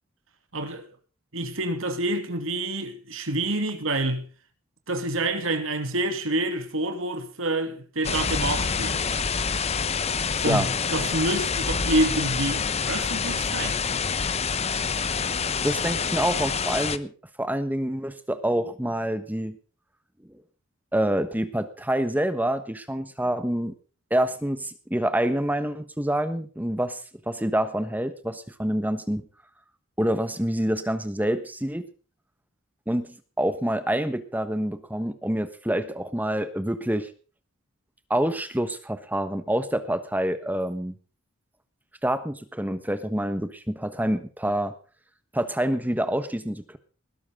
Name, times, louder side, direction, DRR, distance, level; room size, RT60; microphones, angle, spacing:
voice 1, 0.5-0.9 1.3-4.3 4.9-9.2 10.4-10.7 10.9-13.8, right 2 dB, 75° right, 2.7 m, -27 dB
sound 1, 8.0-17.0, left 5 dB, 30° left, 0.9 m, -27 dB
voice 2, 15.6-17.1 17.4-19.6 20.9-23.7 24.1-27.0 27.3-29.2 30.0-31.9 32.9-37.1 38.1-40.9 42.0-44.7 45.3-46.8, right 1 dB, 10° right, 1.2 m, -27 dB
20.0 x 12.5 x 3.7 m
head